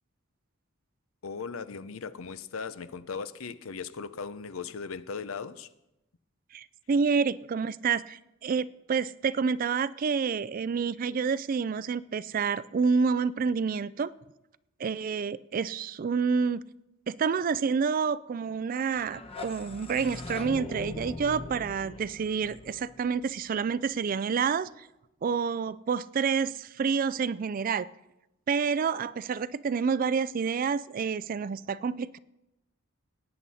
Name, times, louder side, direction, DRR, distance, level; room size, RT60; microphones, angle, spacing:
voice 1, 1.2-5.7, left 5 dB, 80° left, 14 dB, 0.6 m, -38 dB
voice 2, 6.5-14.1 14.8-16.6 17.1-24.9 25.2-27.9 28.5-32.2, right 5 dB, 40° right, 18 dB, 0.3 m, -28 dB
sound 1, 19.0-23.9, left 2 dB, 30° left, 0.9 m, -41 dB
18.0 x 9.5 x 4.2 m, 0.94 s
head